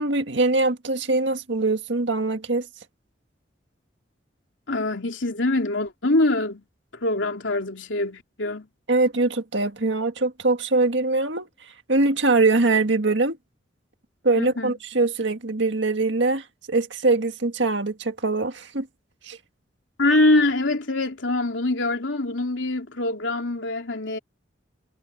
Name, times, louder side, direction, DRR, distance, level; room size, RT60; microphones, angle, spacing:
voice 1, 0.0-2.7 8.9-11.5 11.9-13.4 14.2-18.9 19.2-19.4, right 3 dB, 70° right, 1.8 m, -22 dB
voice 2, 4.7-6.6 7.0-8.7 14.4-14.7 20.0-24.2, left 2 dB, 85° left, 3.1 m, -24 dB
head